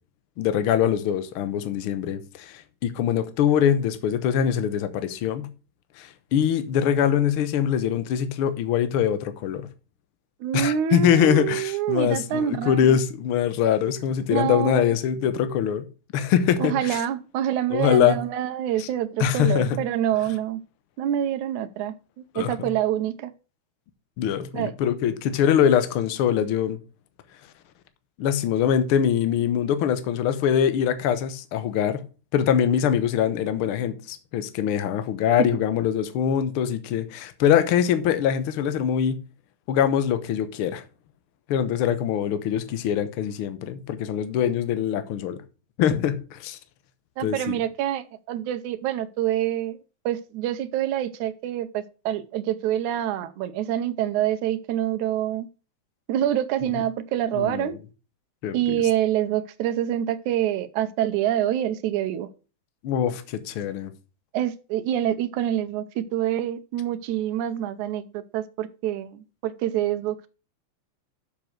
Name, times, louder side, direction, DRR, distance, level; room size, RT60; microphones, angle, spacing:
voice 1, 0.4-5.5 6.0-9.7 10.5-15.8 16.1-17.0 17.7-18.2 18.8-18.9 19.2-19.8 22.3-22.7 24.2-26.8 28.2-32.0 32.3-39.2 39.7-40.8 41.5-45.4 45.8-46.6 47.2-47.6 56.7-56.8 57.3-57.8 58.4-58.8 62.8-63.9, left 9 dB, 60° left, 1.6 m, -23 dB
voice 2, 10.4-13.0 14.3-14.9 16.6-20.6 21.0-21.9 22.4-23.3 24.5-24.7 47.2-49.8 50.1-55.5 56.1-57.8 58.5-62.3 64.3-70.3, right 11 dB, 90° right, 2.2 m, -26 dB
6.8 x 6.7 x 6.4 m
omnidirectional pair, 3.3 m